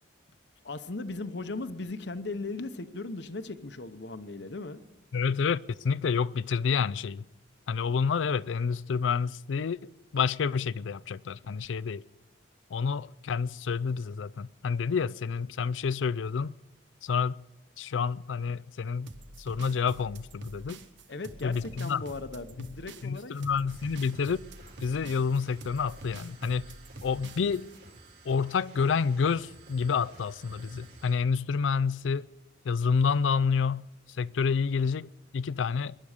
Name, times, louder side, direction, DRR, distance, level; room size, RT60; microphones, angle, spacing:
voice 1, 0.6-4.8 21.1-23.3, left 3 dB, 70° left, 0.9 m, -37 dB
voice 2, 5.1-7.2 7.7-12.0 12.7-16.5 17.0-17.4 17.8-19.1 19.4-20.8 21.4-22.0 22.6-22.7 23.0-24.4 24.8-26.7 27.0-27.7 28.3-32.3 32.6-36.0, left 5 dB, 85° left, 0.4 m, -29 dB
sound 1, 19.1-27.8, right 2 dB, 80° right, 1.2 m, -47 dB
sound 2, 23.7-31.2, right 2 dB, 60° right, 5.4 m, -53 dB
22.5 x 11.0 x 5.0 m
head